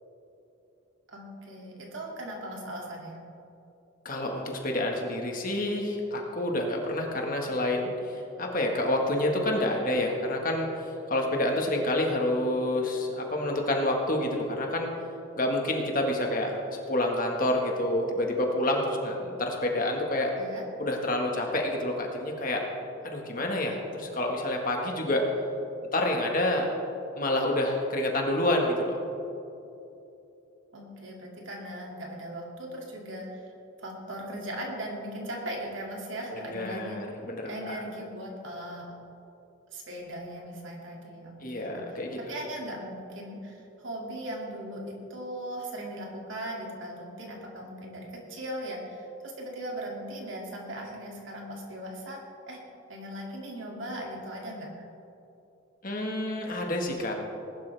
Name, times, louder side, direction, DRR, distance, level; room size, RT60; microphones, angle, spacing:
voice 1, 1.1-3.2 20.3-20.6 30.7-33.4 33.8-37.0 37.4-38.8 39.7-42.0 42.3-52.2 52.5-52.6 52.9-54.8, right 1 dB, 65° right, -1 dB, 2.6 m, -38 dB
voice 2, 4.0-14.9 15.4-20.3 20.8-22.6 23.0-25.2 25.9-26.7 27.2-29.0 36.3-37.8 41.4-42.2 55.8-57.1, left 1 dB, 40° left, 1 dB, 1.7 m, -28 dB
20.0 x 11.5 x 3.5 m, 2.9 s
head